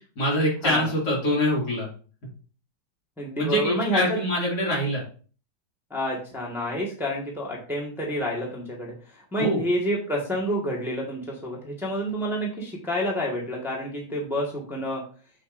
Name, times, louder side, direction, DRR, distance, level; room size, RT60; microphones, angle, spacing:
voice 1, 0.2-1.9 3.4-5.0 9.4-9.6, equal, 55° left, -4 dB, 3.2 m, -24 dB
voice 2, 3.2-4.2 5.9-8.9 9.3-15.0, equal, ahead, -3 dB, 1.4 m, -28 dB
6.8 x 6.7 x 2.6 m, 0.40 s
omnidirectional pair, 2.0 m